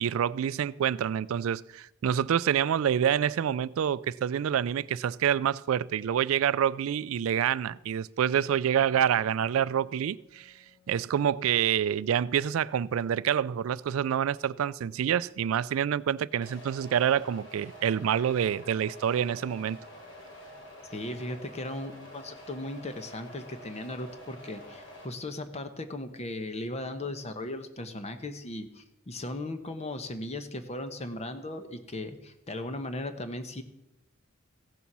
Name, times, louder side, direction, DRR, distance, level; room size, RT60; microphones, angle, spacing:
voice 1, 0.0-10.5 10.9-19.8, right 9 dB, 70° right, 0.3 m, -27 dB
Wind instrument woodwind instrument, 8.4-13.8, left 6 dB, 5° right, 2.4 m, -63 dB
sound 1, 16.4-25.0, equal, 60° left, 3.4 m, -48 dB
voice 2, 20.9-33.6, left 1 dB, 30° left, 1.0 m, -37 dB
15.5 x 7.1 x 6.0 m
head